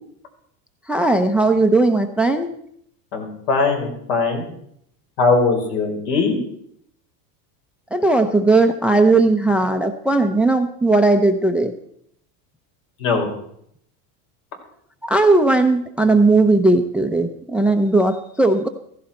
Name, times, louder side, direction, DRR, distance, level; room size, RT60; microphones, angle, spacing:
voice 1, 0.9-2.5 7.9-11.7 15.0-18.7, right 2 dB, 5° right, 8 dB, 0.6 m, -17 dB
voice 2, 3.1-4.4 5.2-6.4 13.0-13.3, left 4 dB, 65° left, 3 dB, 5.1 m, -20 dB
15.5 x 15.5 x 4.4 m, 0.71 s
supercardioid pair, 135°, 47 cm